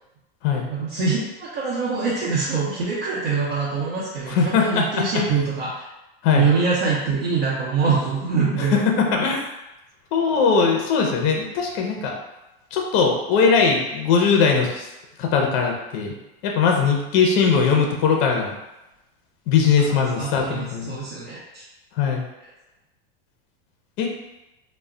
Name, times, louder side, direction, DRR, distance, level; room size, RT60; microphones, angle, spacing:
voice 1, 0.7-5.9 6.3-8.8 19.9-21.6, right 4 dB, 70° right, -7 dB, 0.8 m, -24 dB
voice 2, 4.3-5.0 6.2-6.5 8.6-9.4 10.1-12.1 12.7-14.9 15.2-16.1 16.4-18.5 19.5-21.0 22.0-22.2 24.0-24.1, left 5 dB, 35° left, 1 dB, 0.4 m, -20 dB
2.2 x 2.1 x 3.6 m, 0.96 s
supercardioid pair, 160°, 30 cm